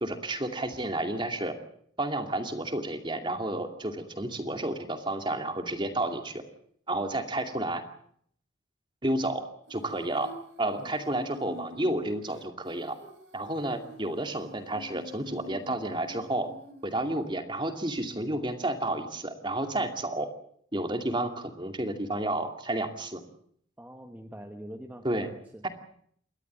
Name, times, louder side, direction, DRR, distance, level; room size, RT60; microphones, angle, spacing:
voice 1, 0.0-1.6 2.0-6.4 6.9-7.8 9.0-9.4 9.7-10.3 10.6-13.0 13.3-16.5 16.8-20.3 20.7-23.2 25.0-25.3 25.6-25.7, right 1 dB, 25° right, 6 dB, 2.5 m, -31 dB
Female singing, 9.7-17.4, left 1 dB, 60° right, 3.3 m, -47 dB
voice 2, 23.8-25.6, equal, 10° right, 3 dB, 1.5 m, -44 dB
29.0 x 13.0 x 8.7 m, 0.65 s
head